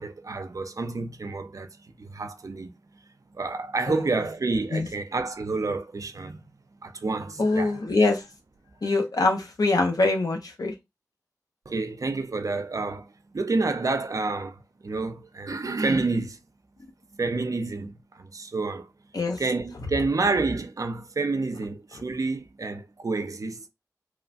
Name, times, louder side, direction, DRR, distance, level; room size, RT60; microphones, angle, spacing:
voice 1, 0.0-1.7 2.0-2.7 3.3-6.4 6.8-7.8 11.7-16.4 17.1-18.9 19.4-23.7, right 3 dB, 65° right, 0.5 m, -29 dB
voice 2, 7.4-8.2 8.8-10.7 19.1-19.4, left 3 dB, 85° left, 0.7 m, -23 dB
3.0 x 2.1 x 2.5 m
wide cardioid pair, 45°, 6 cm